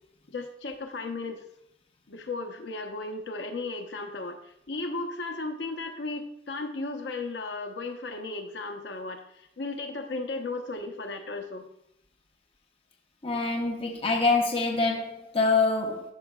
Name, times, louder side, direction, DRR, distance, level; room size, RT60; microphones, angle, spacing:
voice 1, 0.3-1.4 2.1-11.6, left 3 dB, 60° left, 0.8 m, -35 dB
voice 2, 13.2-16.1, left 3 dB, 30° left, 0.7 m, -25 dB
12.0 x 5.7 x 2.3 m
head